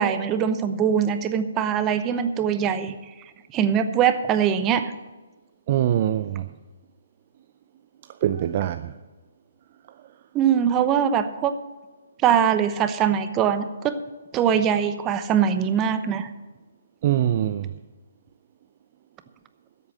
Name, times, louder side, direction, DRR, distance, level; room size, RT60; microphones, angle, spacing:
voice 1, 0.0-2.9 3.5-4.9 10.3-11.5 12.2-13.9 14.3-16.3, right 8 dB, 20° right, 0.8 m, -22 dB
voice 2, 5.7-6.5 8.2-8.9 17.0-17.7, right 11 dB, 40° right, 0.4 m, -23 dB
12.5 x 8.3 x 7.4 m
hypercardioid pair, 145°, 0 cm